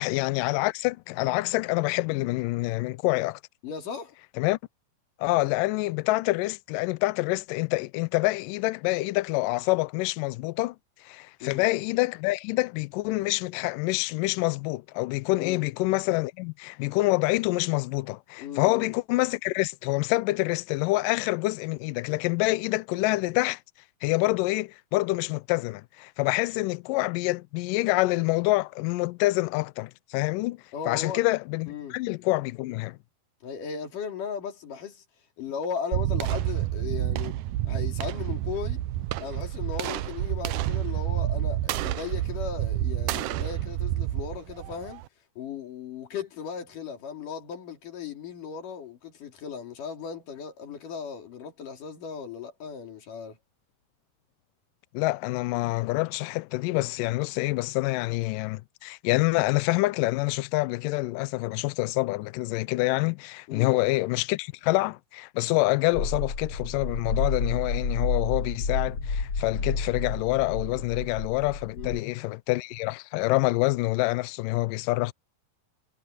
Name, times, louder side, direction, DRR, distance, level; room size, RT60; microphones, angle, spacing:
voice 1, 0.0-3.4 4.4-4.6 5.2-10.8 11.0-23.6 24.0-30.6 30.9-33.0 54.9-75.1, left 21 dB, 85° left, 1.9 m, -26 dB
voice 2, 3.6-4.1 11.4-11.7 15.3-15.6 18.4-18.9 30.7-31.2 31.7-32.0 33.4-35.0 35.4-37.4 37.6-38.8 39.2-45.0 45.4-53.4 63.5-63.8 71.7-72.1, left 7 dB, 55° left, 4.3 m, -37 dB
sound 1, 35.9-45.1, right 14 dB, 85° right, 1.8 m, -29 dB
sound 2, 65.9-72.0, left 3 dB, 35° left, 5.0 m, -30 dB
omnidirectional pair, 4.6 m